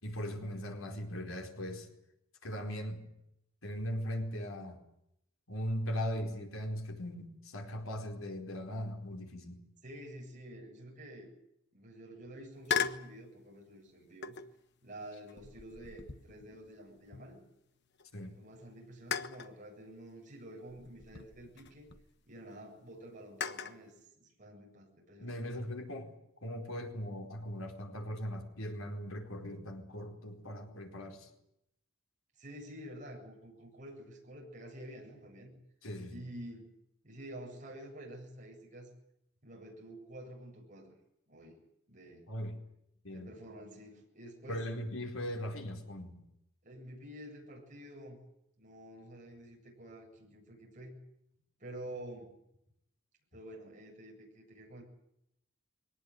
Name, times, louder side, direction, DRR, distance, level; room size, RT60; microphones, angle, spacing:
voice 1, 0.0-1.9 2.4-3.0 3.6-4.8 5.5-9.6 18.1-18.4 25.2-26.1 26.4-31.3 35.8-36.2 42.3-42.6 43.0-43.3 44.5-46.2, equal, 70° left, 3 dB, 4.5 m, -39 dB
voice 2, 9.8-11.3 11.7-14.4 14.8-17.4 18.3-21.9 22.3-25.4 32.4-35.6 36.1-36.7 37.0-38.9 39.4-40.9 41.3-41.6 41.9-42.3 43.1-44.7 46.6-48.2 48.6-51.0 51.6-52.3 53.3-54.8, right 1 dB, 35° right, -1 dB, 7.8 m, -49 dB
sound 1, 12.7-13.1 14.2-14.6 15.3-17.6 18.0-18.1 19.1-19.5 20.7-22.1 23.4-23.8, left 7 dB, 50° left, 1.3 m, -38 dB
23.0 x 19.0 x 9.6 m, 0.79 s
head